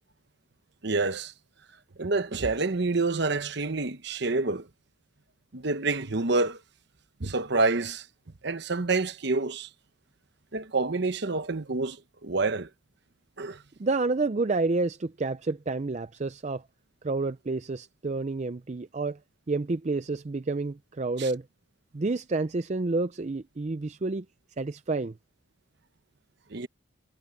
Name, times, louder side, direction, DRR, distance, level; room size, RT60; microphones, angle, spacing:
voice 1, 0.8-1.3 2.0-4.7 5.5-6.6 7.2-8.0 8.4-9.7 10.5-12.0 12.2-12.7 13.4-13.6 21.2-21.3 26.5-26.7, right 3 dB, 55° right, 1.0 m, -27 dB
voice 2, 13.8-16.6 17.0-19.2 19.5-21.4 21.9-24.2 24.6-25.1, right 3 dB, 35° right, 0.5 m, -29 dB
head